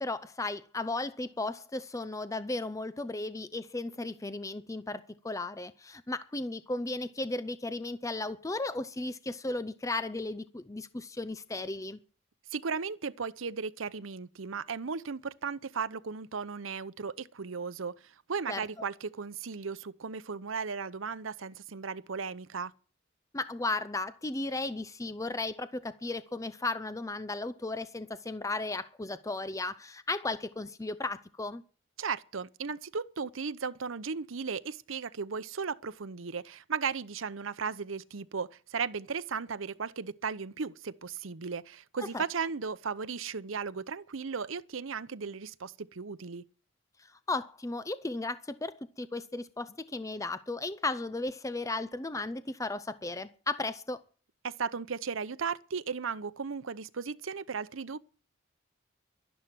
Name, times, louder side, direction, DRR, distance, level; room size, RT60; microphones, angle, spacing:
voice 1, 0.0-12.0 18.5-18.6 23.3-31.6 42.0-42.2 47.1-54.0, left 2 dB, 15° left, 0.6 m, -35 dB
voice 2, 12.5-22.7 32.0-46.4 54.4-58.0, right 5 dB, 80° right, 0.8 m, -36 dB
12.0 x 11.0 x 7.7 m
head